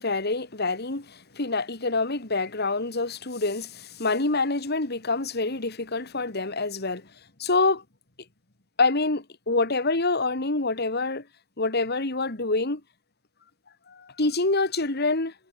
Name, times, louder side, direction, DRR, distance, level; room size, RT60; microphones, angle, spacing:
voice 1, 0.0-7.0 7.4-7.8 8.8-11.2 11.6-12.8 13.9-15.3, left 3 dB, 55° left, 2.4 m, -26 dB
head